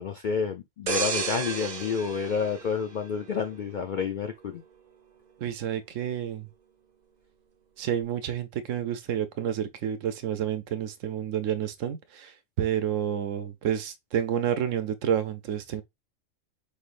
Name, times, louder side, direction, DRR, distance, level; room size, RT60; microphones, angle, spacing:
voice 1, 0.0-4.6, left 6 dB, 65° left, 0.4 m, -29 dB
sound 1, 0.9-3.5 4.0-4.2, right 5 dB, 40° right, 0.7 m, -32 dB
voice 2, 5.4-6.5 7.8-15.8, right 9 dB, 75° right, 1.0 m, -29 dB
4.8 x 3.3 x 2.4 m
omnidirectional pair, 1.4 m